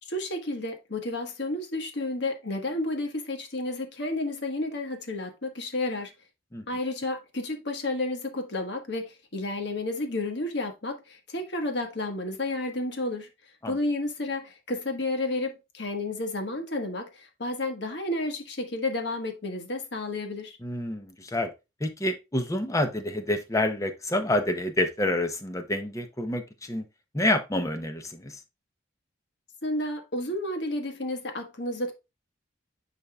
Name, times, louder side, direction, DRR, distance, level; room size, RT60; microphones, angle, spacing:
voice 1, 0.0-6.1 6.7-13.3 13.7-20.6 29.6-31.9, left 2 dB, 60° left, 1.4 m, -31 dB
voice 2, 20.6-21.5 21.8-26.8 27.1-28.4, left 1 dB, 15° left, 0.7 m, -28 dB
10.0 x 4.2 x 2.3 m
head